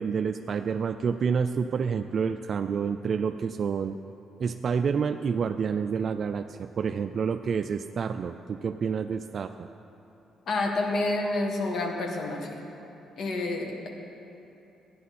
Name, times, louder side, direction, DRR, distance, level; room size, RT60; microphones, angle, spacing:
voice 1, 0.0-4.0 4.4-9.7, right 6 dB, 50° right, 8 dB, 0.3 m, -28 dB
voice 2, 10.5-12.6 13.2-13.9, left 2 dB, 65° left, 1 dB, 1.6 m, -29 dB
14.0 x 10.0 x 4.2 m, 3.0 s
cardioid pair, 90°, 0 cm